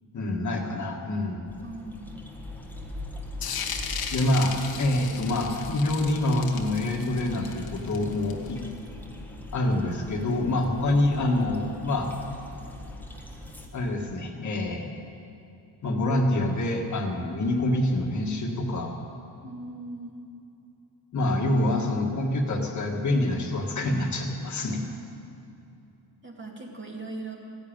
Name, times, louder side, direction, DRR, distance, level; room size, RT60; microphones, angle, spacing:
voice 1, 0.1-1.5 4.1-8.6 9.5-12.1 13.7-14.9 15.8-18.9 21.1-24.8, left 1 dB, 45° left, 1 dB, 1.7 m, -26 dB
sound 1, 1.4-13.7, left 1 dB, 5° left, 1.5 m, -41 dB
voice 2, 1.6-2.2 19.4-20.2 24.8-25.2 26.2-27.4, right 2 dB, 30° right, -1 dB, 2.5 m, -40 dB
sound 2, 3.4-8.7, left 6 dB, 65° left, 1.4 m, -36 dB
15.0 x 10.5 x 8.9 m, 2.7 s
cardioid pair, 135°, 39 cm